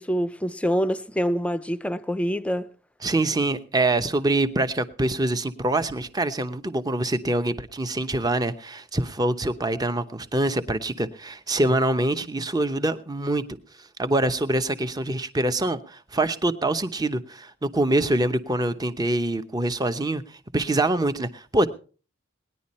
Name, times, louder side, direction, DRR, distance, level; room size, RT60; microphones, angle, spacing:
voice 1, 0.0-2.7, equal, 5° left, 0.6 m, -26 dB
voice 2, 3.0-13.4 13.8-21.7, right 2 dB, 20° right, 0.8 m, -25 dB
19.0 x 10.5 x 4.3 m
head